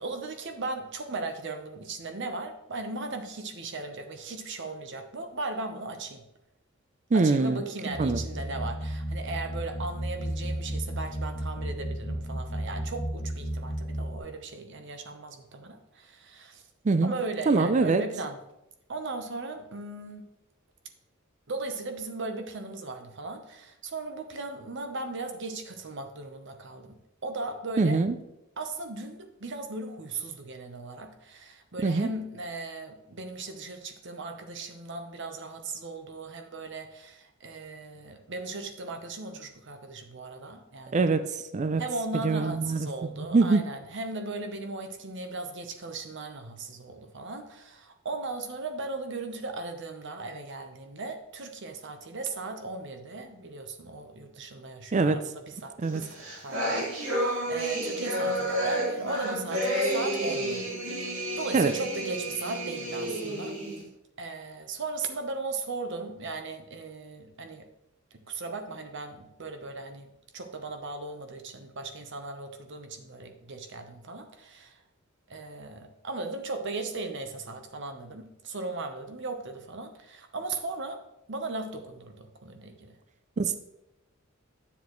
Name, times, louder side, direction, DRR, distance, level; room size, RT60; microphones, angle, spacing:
voice 1, 0.0-6.2 7.1-16.6 17.0-18.4 18.9-20.3 21.5-28.0 28.6-41.1 41.8-60.6 61.0-63.6 64.2-67.7 68.1-74.8 75.3-81.0 81.3-83.0, right 3 dB, 60° right, 6 dB, 1.0 m, -37 dB
voice 2, 7.1-7.6 8.0-8.2 16.8-17.1 17.5-18.0 27.8-28.2 31.8-32.1 40.9-41.3 41.5-41.8 42.2-42.9 43.2-43.6 54.9-55.2 55.8-56.0 61.5-61.7 83.4-83.6, right 3 dB, 35° right, 11 dB, 0.4 m, -23 dB
sound 1, 7.9-14.2, equal, 40° left, 1.2 m, -33 dB
sound 2, 55.9-63.8, right 1 dB, 90° right, 2.3 m, -30 dB
10.5 x 7.1 x 3.1 m, 0.87 s
head